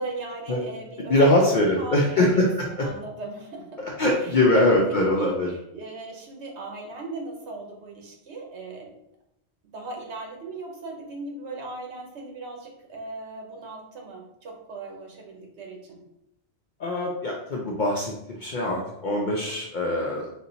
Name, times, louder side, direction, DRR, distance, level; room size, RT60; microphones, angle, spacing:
voice 1, 0.0-3.8 4.2-8.9 9.6-16.0, right 2 dB, 75° right, 0 dB, 1.2 m, -38 dB
voice 2, 1.1-2.9 3.8-5.5 16.8-20.3, left 1 dB, 55° left, -2 dB, 0.6 m, -22 dB
4.1 x 2.2 x 3.9 m, 0.83 s
omnidirectional pair, 1.2 m